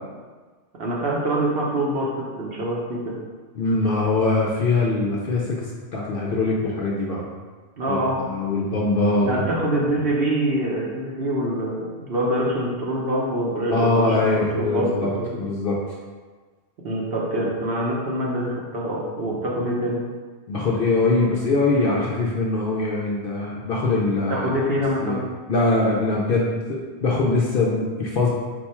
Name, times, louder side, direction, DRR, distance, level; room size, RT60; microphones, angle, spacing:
voice 1, 0.8-3.2 7.8-8.2 9.2-15.3 16.8-20.0 24.3-25.2, right 1 dB, 55° right, -3 dB, 0.8 m, -25 dB
voice 2, 3.5-7.3 7.9-9.6 13.7-15.1 15.4-15.8 19.3-19.4 20.5-24.5 25.0-25.2 25.5-28.3, left 3 dB, 60° left, -4 dB, 0.6 m, -22 dB
4.5 x 2.3 x 4.2 m, 1.4 s
omnidirectional pair, 1.3 m